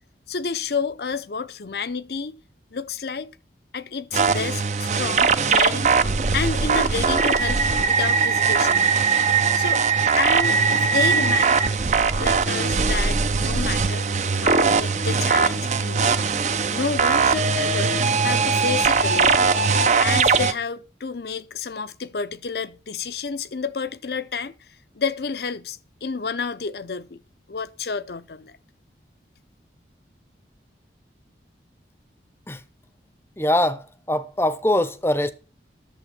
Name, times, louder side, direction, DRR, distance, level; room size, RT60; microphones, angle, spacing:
voice 1, 0.3-2.4 2.7-3.4 3.7-5.9 6.3-9.0 9.5-9.8 10.2-11.6 12.2-14.1 14.4-16.1 16.7-17.9 18.2-19.4 20.0-24.5 24.9-27.2 27.5-28.5, left 5 dB, 60° left, 0.6 m, -30 dB
sound 1, 4.1-20.5, right 5 dB, 40° right, 0.6 m, -20 dB
voice 2, 33.4-35.3, left 1 dB, 15° left, 0.7 m, -22 dB
11.0 x 7.1 x 5.9 m
head